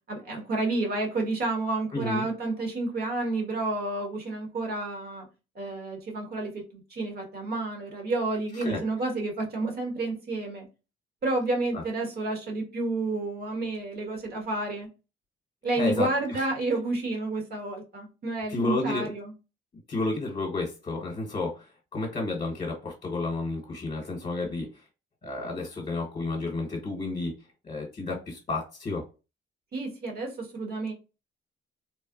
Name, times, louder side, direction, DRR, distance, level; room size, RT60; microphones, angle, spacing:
voice 1, 0.1-5.3 5.5-10.7 11.2-14.9 15.6-19.3 29.7-30.9, right 2 dB, 50° right, 1.3 m, -30 dB
voice 2, 1.9-2.2 8.6-8.8 11.7-11.8 15.8-16.4 18.5-19.1 19.9-24.7 25.2-27.3 27.6-29.0, left 2 dB, 35° left, 1.0 m, -31 dB
3.3 x 2.0 x 2.4 m
cardioid pair, 90°, 20 cm